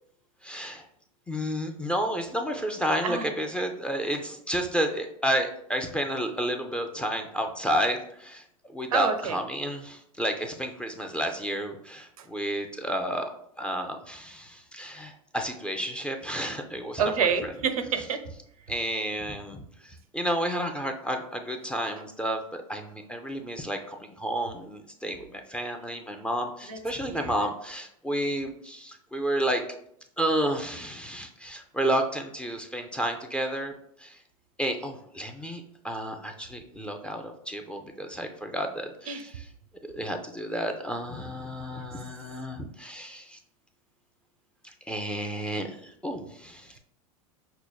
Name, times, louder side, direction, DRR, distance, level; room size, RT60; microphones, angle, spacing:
voice 1, 0.4-0.9 1.3-8.4 8.7-13.3 13.6-17.0 18.7-29.6 30.2-33.7 34.0-34.2 34.6-39.3 39.8-43.4 44.6-46.8, equal, 5° left, 4 dB, 0.4 m, -31 dB
voice 2, 8.9-9.4 12.2-12.3 17.0-18.2 26.7-26.8 27.1-27.5 39.1-39.2, right 6 dB, 85° right, 8 dB, 0.5 m, -28 dB
5.6 x 2.1 x 2.2 m, 0.71 s
hypercardioid pair, 95°, 18 cm